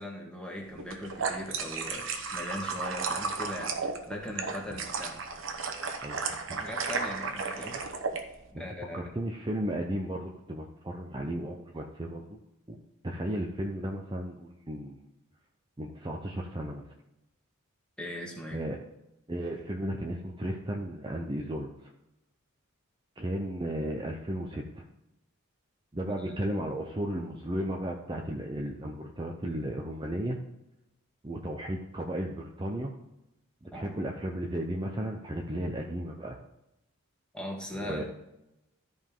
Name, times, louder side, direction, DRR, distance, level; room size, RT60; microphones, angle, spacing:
voice 1, 0.0-5.2 6.3-7.8 8.5-9.0 18.0-18.6 26.0-26.3 33.7-34.1 37.3-38.0, left 1 dB, 5° left, -1 dB, 1.6 m, -40 dB
sound 1, 0.8-8.2, right 4 dB, 60° right, 1.0 m, -34 dB
voice 2, 6.0-6.6 8.5-8.6 8.9-12.4 12.7-12.8 13.0-15.1 15.8-16.9 18.5-18.8 19.3-21.9 23.2-24.8 25.9-30.4 31.2-32.9 33.6-36.4 37.7-38.0, right 1 dB, 20° right, 1 dB, 0.7 m, -34 dB
13.5 x 5.2 x 3.7 m, 0.89 s
head